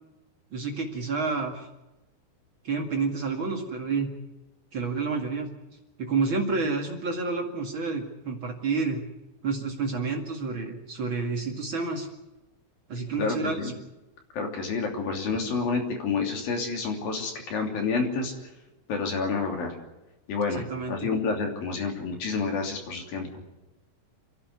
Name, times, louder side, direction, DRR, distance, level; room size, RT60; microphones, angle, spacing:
voice 1, 0.5-1.7 2.6-4.1 4.7-5.5 6.0-9.0 9.4-12.1 12.9-13.7 20.5-21.1, right 4 dB, 55° right, 2 dB, 1.3 m, -29 dB
voice 2, 13.2-13.7 14.3-18.3 18.9-19.8 20.3-23.4, left 4 dB, 50° left, 3 dB, 4.4 m, -29 dB
29.0 x 11.5 x 9.5 m, 0.99 s
omnidirectional pair, 5.8 m